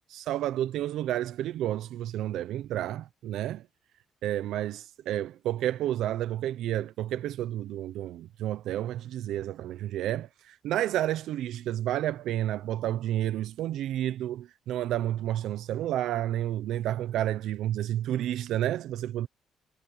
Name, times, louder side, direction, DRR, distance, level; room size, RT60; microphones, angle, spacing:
voice 1, 0.0-3.6 4.2-19.3, right 12 dB, 85° right, 0.7 m, -30 dB
cardioid pair, 125°, 0 cm